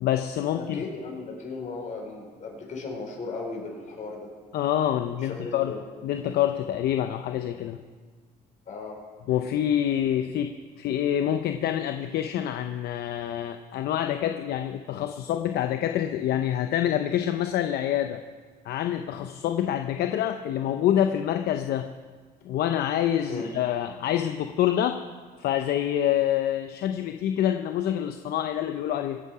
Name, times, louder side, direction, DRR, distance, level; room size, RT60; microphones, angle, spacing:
voice 1, 0.0-0.8 4.5-5.7 6.0-7.8 9.3-18.2 18.6-21.9 22.4-25.0 25.4-29.2, left 11 dB, 70° left, 7 dB, 0.7 m, -26 dB
voice 2, 0.5-4.3 5.2-5.8 8.7-9.0 23.3-23.5, left 3 dB, 45° left, 0 dB, 4.6 m, -36 dB
24.0 x 8.4 x 4.9 m, 1.5 s
cardioid pair, 110°, 17 cm